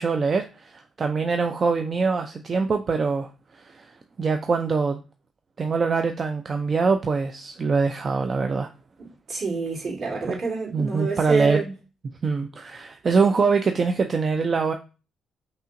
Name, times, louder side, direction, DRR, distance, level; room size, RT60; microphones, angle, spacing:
voice 1, 0.0-3.9 4.2-5.0 5.6-8.7 10.3-10.4 10.7-11.6 12.2-14.7, right 4 dB, 40° right, 0.4 m, -23 dB
voice 2, 9.3-11.7, right 4 dB, 65° right, 2.5 m, -28 dB
5.5 x 2.8 x 2.5 m
cardioid pair, 90°, 0 cm